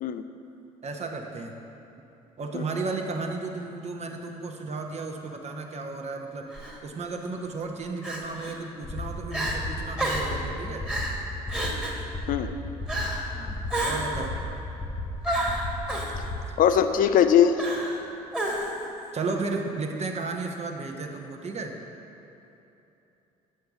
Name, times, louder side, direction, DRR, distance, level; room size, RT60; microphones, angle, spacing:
voice 1, 0.8-1.5 2.4-6.4 6.8-10.8 13.3-13.6 13.8-14.4 19.1-21.7, right 3 dB, 35° right, 3 dB, 0.8 m, -33 dB
Crying sobbing, 6.5-6.8 8.0-8.6 9.0-9.1 9.3-9.6 10.0-10.4 10.9-11.2 11.5-12.0 12.9-13.3 13.7-14.2 15.2-16.1 17.6-18.0 18.3-18.9, right 1 dB, 5° right, 1.4 m, -30 dB
sound 1, 8.8-16.5, left 1 dB, 25° left, 0.9 m, -35 dB
voice 2, 16.6-17.5, left 9 dB, 45° left, 9 dB, 0.4 m, -20 dB
7.7 x 6.6 x 3.6 m, 3.0 s
hypercardioid pair, 55°, 19 cm